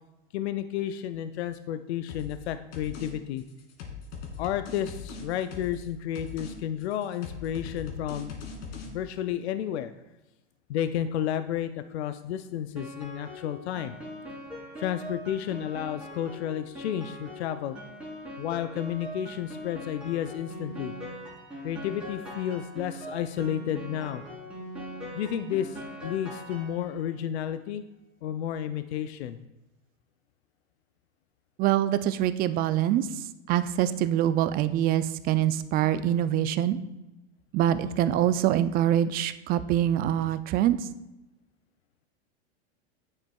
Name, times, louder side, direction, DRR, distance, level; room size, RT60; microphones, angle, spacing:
voice 1, 0.3-3.4 4.4-8.4 8.7-9.9 10.7-14.0 14.8-17.8 18.4-20.9 21.6-24.2 25.1-27.8 28.2-29.4, left 10 dB, 75° left, 11 dB, 0.5 m, -32 dB
sound 1, 2.1-2.4 2.7-3.1 3.4-5.9 6.2-6.5 6.8-8.9, left 5 dB, 60° left, 2.4 m, -40 dB
Piano, 12.8-27.1, equal, 5° right, 2.8 m, -41 dB
voice 2, 31.6-33.1 33.5-36.8 37.5-40.8, right 11 dB, 30° right, 13 dB, 0.4 m, -24 dB
9.7 x 7.2 x 2.3 m, 1.0 s
hypercardioid pair, 105°, 33 cm